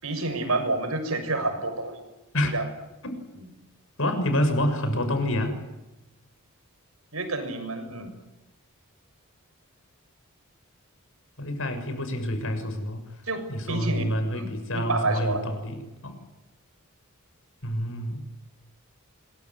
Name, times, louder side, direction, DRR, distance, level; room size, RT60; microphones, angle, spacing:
voice 1, 0.0-2.0 2.5-2.7 7.1-8.1 13.3-14.0 14.3-14.5 14.7-15.4, right 2 dB, 80° right, 7 dB, 6.6 m, -28 dB
voice 2, 4.0-5.5 11.4-13.1 13.5-16.2 17.6-18.2, left 1 dB, 65° left, 7 dB, 6.7 m, -27 dB
26.0 x 22.5 x 9.9 m, 1.0 s
head